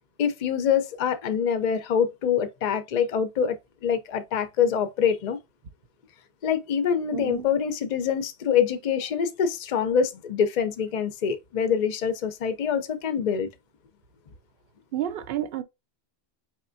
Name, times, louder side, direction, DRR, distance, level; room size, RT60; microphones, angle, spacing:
voice 1, 0.2-5.4 6.4-13.5, left 7 dB, 50° left, 0.6 m, -25 dB
voice 2, 7.1-7.4 14.9-15.6, right 12 dB, 65° right, 0.7 m, -30 dB
4.4 x 3.3 x 2.5 m
omnidirectional pair, 1.1 m